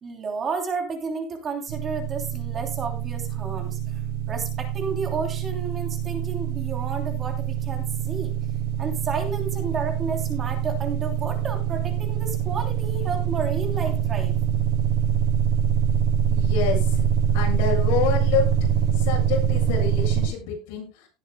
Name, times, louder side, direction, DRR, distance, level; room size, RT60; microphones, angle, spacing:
voice 1, 0.0-4.0 4.3-8.3 8.8-14.4, right 4 dB, 25° right, 4 dB, 3.1 m, -31 dB
sound 1, 1.7-20.3, right 8 dB, 65° right, 7.0 m, -25 dB
voice 2, 16.3-17.0 17.3-18.5 18.9-21.1, left 7 dB, 70° left, 0 dB, 7.6 m, -27 dB
18.0 x 9.4 x 2.2 m, 0.32 s
cardioid pair, 155°, 0 cm